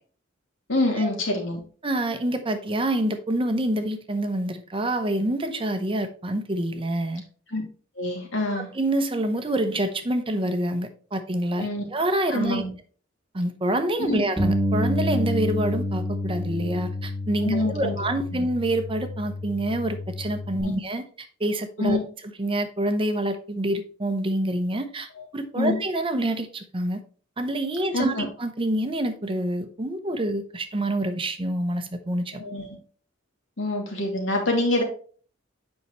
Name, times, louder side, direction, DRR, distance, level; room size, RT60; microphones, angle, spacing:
voice 1, 0.7-1.6 7.5-7.6 8.0-8.7 11.5-11.8 12.3-12.7 14.0-14.3 17.4-18.0 20.6-20.7 21.8-22.0 25.2-25.3 25.6-25.8 27.9-28.3 32.3-32.8 33.6-34.8, left 2 dB, 70° left, 1 dB, 2.6 m, -26 dB
voice 2, 1.8-7.2 8.5-12.6 13.3-22.0 22.4-27.0 27.4-32.4, right 1 dB, 25° right, 8 dB, 0.8 m, -27 dB
Bass guitar, 14.4-20.6, left 1 dB, 5° right, 2.3 m, -28 dB
8.2 x 5.7 x 3.1 m, 0.40 s
head